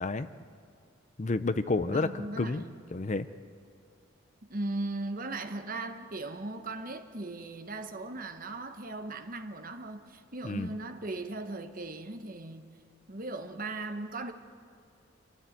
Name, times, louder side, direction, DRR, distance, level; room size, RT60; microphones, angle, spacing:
voice 1, 1.2-2.6 2.9-3.3 10.4-10.7, left 3 dB, 35° left, 0.6 m, -30 dB
voice 2, 1.9-2.8 4.5-12.6 13.1-14.3, right 2 dB, 40° right, 1.2 m, -38 dB
27.0 x 13.0 x 9.4 m
head